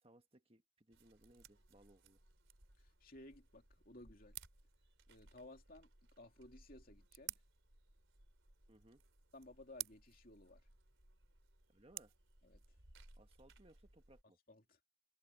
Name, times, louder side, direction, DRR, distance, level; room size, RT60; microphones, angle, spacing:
voice 1, 0.0-2.2 8.7-9.0 11.7-12.1 13.1-14.4, right 1 dB, 25° right, 1.5 m, -66 dB
sound 1, 0.9-14.2, right 11 dB, 65° right, 3.9 m, -56 dB
voice 2, 2.8-4.4 5.1-5.9 6.2-7.4 9.3-10.6 12.4-12.6 14.5-14.8, left 1 dB, 45° left, 2.9 m, -58 dB
head